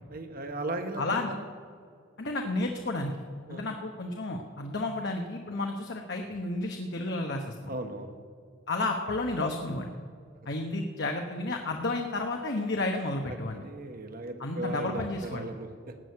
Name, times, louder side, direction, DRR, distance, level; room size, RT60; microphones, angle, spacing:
voice 1, 0.1-1.5 3.5-3.8 7.7-8.2 13.3-15.7, right 2 dB, 50° right, 6 dB, 1.3 m, -37 dB
voice 2, 1.0-1.3 2.2-3.1 3.5-7.7 8.7-9.9 10.4-13.6 14.4-15.5, left 2 dB, 60° left, 3 dB, 1.1 m, -32 dB
17.5 x 6.3 x 9.6 m, 2.1 s
head